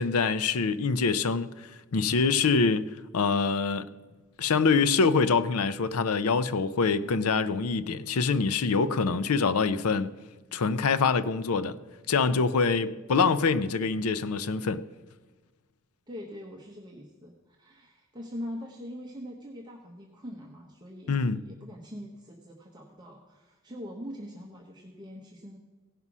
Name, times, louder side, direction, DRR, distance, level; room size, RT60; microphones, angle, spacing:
voice 1, 0.0-3.9 4.4-10.1 10.5-11.8 12.1-14.8 21.1-21.4, left 4 dB, 75° left, 0.5 m, -25 dB
voice 2, 16.1-25.6, equal, 20° right, 0.9 m, -43 dB
16.5 x 5.5 x 6.0 m
head